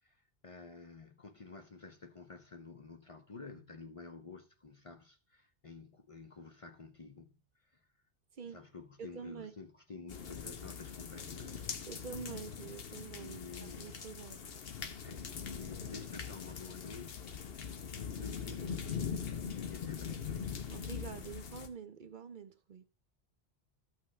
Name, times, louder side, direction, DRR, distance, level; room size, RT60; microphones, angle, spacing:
voice 1, 0.0-7.4 7.7-7.9 8.4-11.7 13.1-14.1 15.0-17.6 17.9-20.4, left 4 dB, 40° left, 0.6 m, -51 dB
voice 2, 9.0-9.5 11.9-14.6 20.7-22.8, right 6 dB, 55° right, 0.7 m, -47 dB
sound 1, 10.1-21.7, left 7 dB, 70° left, 1.1 m, -42 dB
13.0 x 5.7 x 3.2 m
omnidirectional pair, 1.1 m